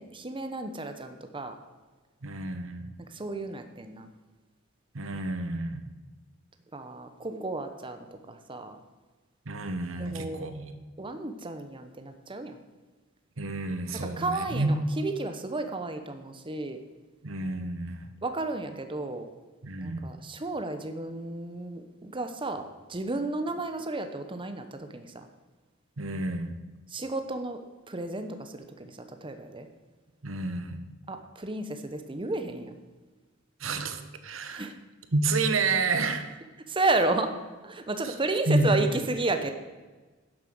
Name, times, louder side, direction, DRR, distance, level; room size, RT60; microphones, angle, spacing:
voice 1, 0.0-1.6 3.1-4.1 6.7-8.8 10.0-10.5 11.0-12.6 13.9-16.8 18.2-19.3 19.8-25.3 26.9-27.6 27.9-29.7 31.1-32.8 34.5-34.7 36.7-37.3 37.6-39.5, right 2 dB, 25° right, 7 dB, 0.9 m, -32 dB
voice 2, 2.2-2.9 4.9-5.9 9.4-10.8 13.4-14.7 17.2-18.1 19.6-20.1 26.0-26.5 30.2-30.8 33.6-34.7 35.1-36.3 38.0-38.1 38.5-38.9, right 2 dB, 80° right, 9 dB, 1.3 m, -29 dB
11.5 x 7.5 x 7.7 m, 1.3 s
head